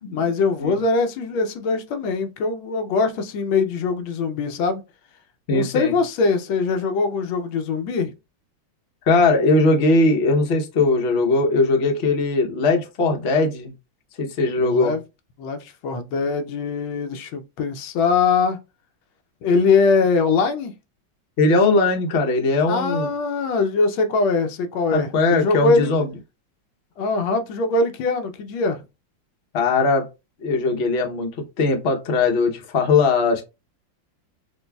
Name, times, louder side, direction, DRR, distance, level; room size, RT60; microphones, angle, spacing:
voice 1, 0.1-4.8 5.5-8.1 14.6-15.0 15.4-18.6 19.4-20.7 22.7-25.9 27.0-28.8, left 4 dB, 90° left, 1.5 m, -22 dB
voice 2, 5.5-5.9 9.1-13.7 14.2-14.9 21.4-23.1 24.9-26.1 29.5-30.1 30.4-31.3 31.6-33.4, left 3 dB, 50° left, 0.8 m, -19 dB
6.1 x 2.6 x 2.2 m
omnidirectional pair, 2.1 m